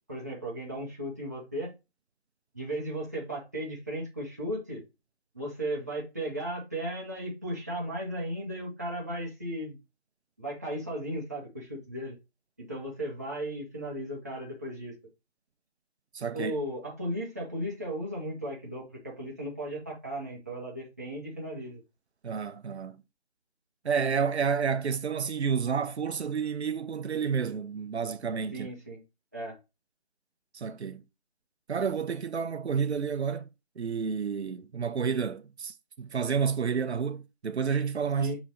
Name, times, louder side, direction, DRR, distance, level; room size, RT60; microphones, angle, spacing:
voice 1, 0.1-1.7 2.5-4.8 5.3-9.8 10.4-12.1 12.6-14.9 16.3-21.8 28.5-29.0 29.3-29.6 38.2-38.4, right 1 dB, 15° right, 0.7 m, -35 dB
voice 2, 16.1-16.5 22.2-23.0 23.8-28.7 30.5-31.0 31.7-33.5 33.8-38.4, right 6 dB, 85° right, 0.6 m, -30 dB
6.3 x 3.0 x 2.7 m
figure-of-eight pair, 165°, 32 cm